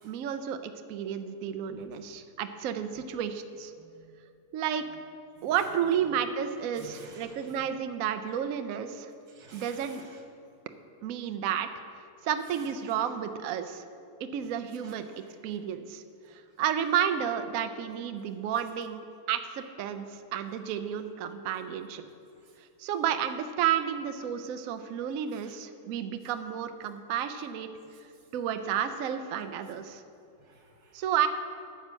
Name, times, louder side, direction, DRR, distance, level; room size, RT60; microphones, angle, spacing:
voice 1, 0.0-3.7 4.5-4.8 5.4-9.1 9.5-10.0 11.0-11.7 12.2-13.8 14.3-15.1 15.4-16.0 16.3-22.0 22.8-27.7 28.3-30.0 30.9-31.3, right 9 dB, 65° right, 8 dB, 0.9 m, -31 dB
voice 2, 1.7-2.1 3.8-4.2 5.4-5.5 6.8-7.6 9.3-10.2 12.5-13.0 14.8-15.4 16.2-16.4 22.4-22.5 24.9-25.0 25.3-25.6 27.9-28.0 30.4-31.0, right 4 dB, 85° right, 1 dB, 2.2 m, -53 dB
9.6 x 7.9 x 6.2 m, 2.6 s
omnidirectional pair, 1.9 m